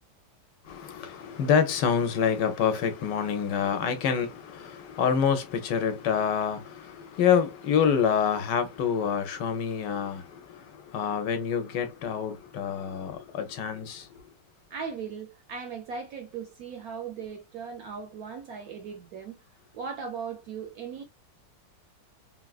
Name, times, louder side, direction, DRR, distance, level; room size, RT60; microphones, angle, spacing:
voice 1, 0.7-14.1, left 7 dB, 70° left, 1.2 m, -27 dB
voice 2, 14.7-19.4 19.7-21.0, right 6 dB, 70° right, 0.9 m, -38 dB
3.6 x 2.3 x 2.3 m
omnidirectional pair, 2.0 m